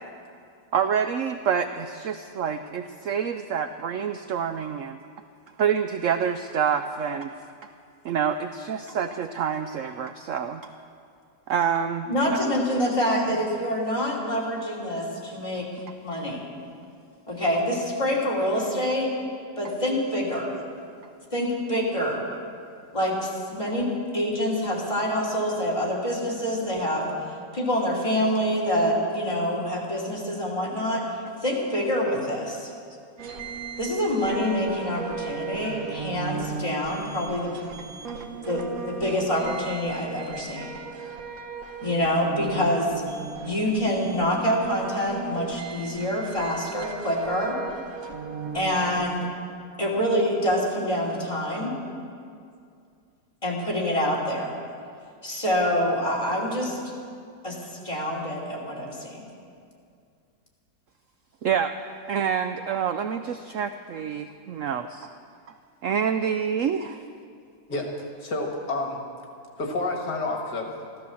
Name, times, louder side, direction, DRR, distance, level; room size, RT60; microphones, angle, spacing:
voice 1, 0.7-5.0 5.6-7.3 7.6-7.7 8.0-10.6 11.5-12.4 38.1-38.2 61.4-61.7 62.1-65.1 65.8-67.0, right 7 dB, 75° right, 9 dB, 0.7 m, -27 dB
voice 2, 12.1-15.7 16.0-16.4 17.3-19.1 19.6-20.5 21.3-22.2 22.9-27.1 27.5-31.0 31.4-32.7 33.8-37.5 38.5-40.7 41.8-42.9 43.4-47.6 48.5-49.3 49.8-51.7 53.4-54.5 55.2-56.8 57.4-57.6 57.8-59.3, equal, 15° left, -4 dB, 2.9 m, -26 dB
sound 1, 33.2-49.1, right 5 dB, 55° right, 1.4 m, -37 dB
voice 3, 68.2-69.0 69.6-70.7, left 2 dB, 65° left, 1 dB, 2.3 m, -29 dB
14.5 x 13.0 x 7.0 m, 2.3 s
omnidirectional pair, 1.9 m